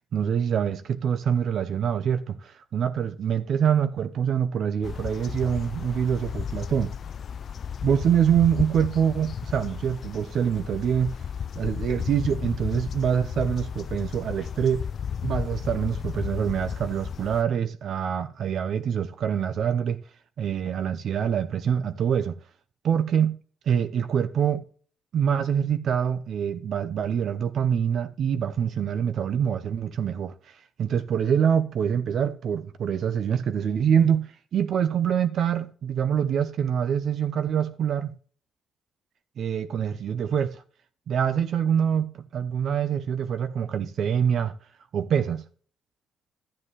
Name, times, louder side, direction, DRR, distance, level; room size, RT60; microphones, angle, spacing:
voice 1, 0.1-6.9 7.8-11.1 11.6-14.9 15.2-20.0 20.4-22.4 22.8-23.4 23.7-24.6 25.1-30.3 30.8-38.1 39.4-40.6 41.1-44.5 44.9-45.4, right 8 dB, 65° right, 0.7 m, -25 dB
sound 1, 4.8-17.4, left 7 dB, 55° left, 0.4 m, -34 dB
13.0 x 7.5 x 3.2 m
cardioid pair, 90°, 0 cm